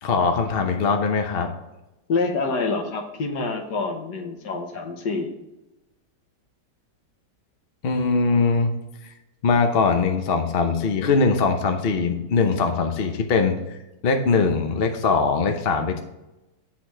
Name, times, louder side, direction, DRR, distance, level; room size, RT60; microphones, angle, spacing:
voice 1, 0.0-1.5 7.8-8.7 9.4-13.5 14.0-16.0, left 4 dB, 50° left, 5 dB, 0.7 m, -21 dB
voice 2, 2.1-5.3, left 3 dB, 70° left, 4 dB, 1.6 m, -26 dB
8.3 x 4.2 x 4.4 m, 0.97 s
omnidirectional pair, 1.9 m